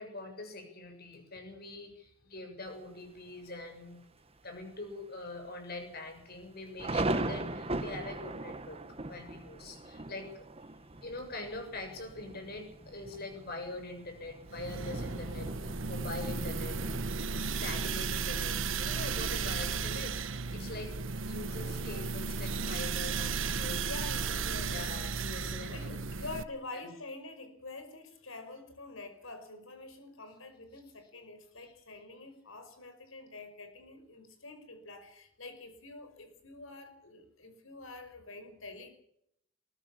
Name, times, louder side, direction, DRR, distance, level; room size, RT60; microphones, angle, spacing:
voice 1, 0.0-4.0 4.4-10.5 11.0-16.8 17.4-21.0 21.3-23.9 24.6-26.0, left 2 dB, 45° left, 5 dB, 7.1 m, -43 dB
Thunder, 2.7-3.2 3.7-3.8 4.1-4.6 4.9-5.0 5.7-22.0, right 2 dB, 30° right, 1.2 m, -40 dB
voice 2, 10.7-11.0 23.8-24.9 25.7-38.9, left 3 dB, 75° left, 9 dB, 5.4 m, -47 dB
sound 1, 14.5-26.4, right 4 dB, 65° right, 1.2 m, -35 dB
21.5 x 19.0 x 7.3 m, 0.73 s
head